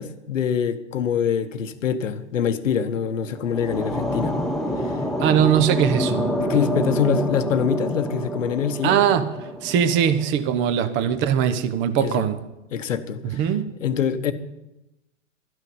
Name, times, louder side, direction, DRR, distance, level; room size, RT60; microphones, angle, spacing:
voice 1, 0.0-4.4 4.8-5.0 6.4-9.0 12.0-12.3 12.7-13.4 13.8-14.3, left 8 dB, 80° left, 1.1 m, -24 dB
sound 1, 3.1-10.3, equal, ahead, 0.6 m, -27 dB
voice 2, 5.2-6.3 8.8-9.3 9.6-12.4 13.2-13.7, right 9 dB, 30° right, 1.0 m, -21 dB
12.5 x 6.3 x 9.4 m
hypercardioid pair, 125°, 38 cm